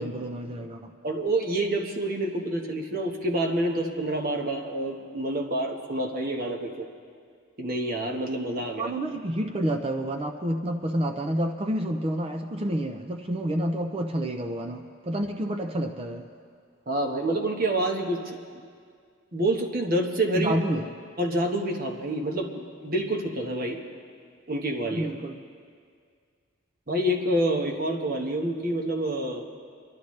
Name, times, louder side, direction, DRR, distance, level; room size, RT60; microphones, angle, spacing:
voice 1, 0.0-0.9 8.8-16.3 20.4-20.9 24.9-25.4, right 1 dB, 25° right, 4 dB, 0.5 m, -29 dB
voice 2, 1.0-6.9 7.6-8.9 16.9-18.4 19.3-20.6 21.2-23.8 24.5-25.1 26.9-29.4, right 1 dB, 45° right, 2 dB, 1.2 m, -27 dB
27.5 x 11.5 x 3.2 m, 2.1 s
head